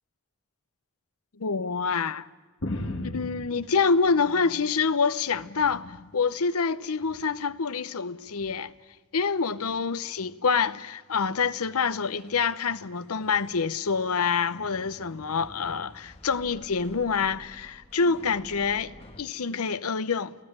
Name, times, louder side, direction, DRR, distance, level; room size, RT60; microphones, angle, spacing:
voice 1, 1.4-2.2 3.1-8.7 9.1-20.4, left 5 dB, 85° left, 0.8 m, -26 dB
sound 1, 2.6-4.8 5.2-6.1 7.0-7.4 8.4-8.5, left 1 dB, 60° left, 1.8 m, -37 dB
sound 2, 12.0-12.1 13.3-13.7 14.5-19.2, left 1 dB, 25° left, 1.4 m, -49 dB
29.0 x 17.5 x 8.8 m
head